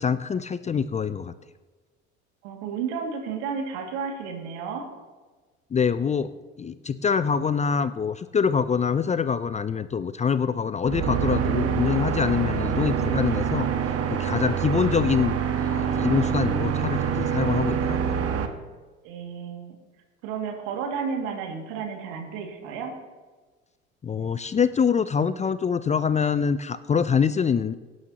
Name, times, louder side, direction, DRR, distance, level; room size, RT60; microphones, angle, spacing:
voice 1, 0.0-1.3 5.7-18.2 24.0-27.7, left 6 dB, 20° left, 14 dB, 0.5 m, -25 dB
voice 2, 2.4-4.9 19.0-19.8 20.2-22.9, right 6 dB, 70° right, 2 dB, 2.3 m, -32 dB
sound 1, 10.8-18.5, right 7 dB, 45° right, 1.3 m, -25 dB
18.0 x 9.5 x 2.9 m, 1.3 s
hypercardioid pair, 65°, 34 cm